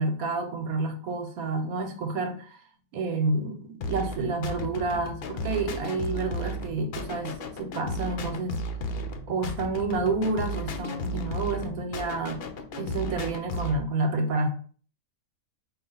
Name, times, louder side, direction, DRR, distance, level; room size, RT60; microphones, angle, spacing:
voice 1, 0.0-2.6 2.9-8.7 9.3-12.4 12.8-14.5, right 3 dB, 80° right, 1.2 m, -29 dB
sound 1, 3.8-13.8, left 1 dB, 60° left, 0.6 m, -34 dB
4.8 x 2.5 x 3.9 m
omnidirectional pair, 1.5 m